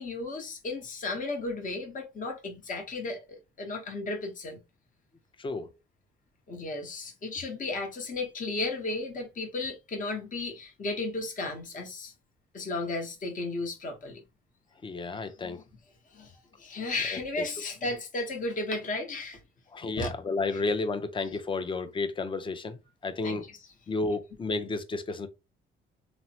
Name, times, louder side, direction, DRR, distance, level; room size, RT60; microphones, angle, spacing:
voice 1, 0.0-4.6 6.5-12.1 12.5-14.2 15.4-15.6 16.1-16.3 16.6-19.4 20.0-20.1 20.5-20.6 23.2-23.6, left 2 dB, 40° left, 1.0 m, -34 dB
voice 2, 5.4-5.7 14.8-15.6 17.1-17.2 19.7-23.4 23.9-25.3, left 3 dB, 25° left, 0.5 m, -32 dB
3.0 x 2.0 x 2.7 m
cardioid pair, 90°, 20 cm